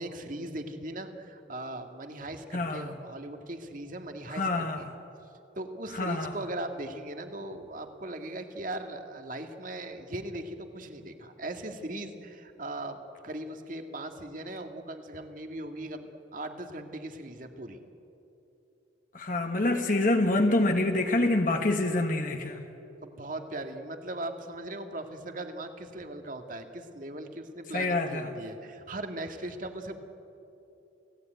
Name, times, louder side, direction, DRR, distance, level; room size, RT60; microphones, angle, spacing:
voice 1, 0.0-4.9 5.6-17.8 23.0-30.0, right 1 dB, 45° right, 5 dB, 2.0 m, -39 dB
voice 2, 2.5-2.9 4.3-4.8 5.9-6.3 19.1-22.6 27.7-28.3, left 2 dB, 45° left, 4 dB, 1.4 m, -26 dB
29.5 x 17.5 x 9.2 m, 3.0 s
head